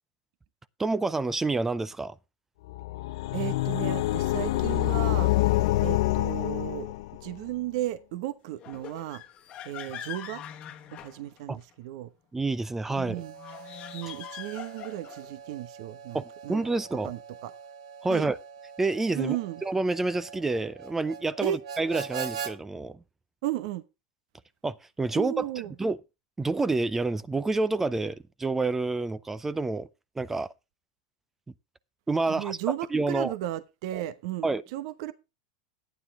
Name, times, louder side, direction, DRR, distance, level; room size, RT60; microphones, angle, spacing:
voice 1, 0.8-2.2 11.5-11.6 12.3-13.2 16.1-17.1 18.0-18.4 18.8-19.4 19.6-23.0 24.6-25.5 25.8-26.0 26.4-29.9 30.2-30.5 32.1-32.6 32.9-33.3 34.4-34.6, right 3 dB, 10° right, 0.5 m, -28 dB
Magical portal open, 2.7-7.3, left 17 dB, 70° left, 0.6 m, -26 dB
voice 2, 3.3-5.3 5.8-6.9 7.2-9.2 9.6-10.4 10.9-12.1 13.0-13.3 13.9-16.6 17.0-17.5 18.1-18.3 19.2-19.6 21.4-21.6 23.4-23.8 25.1-25.7 32.3-35.1, right 14 dB, 60° right, 1.0 m, -34 dB
sound 1, 8.6-11.7 13.3-15.3, left 10 dB, 35° left, 1.2 m, -43 dB
Harmonica, 13.0-22.6, right 6 dB, 85° right, 1.5 m, -42 dB
12.0 x 9.5 x 3.6 m
supercardioid pair, 140°, 3 cm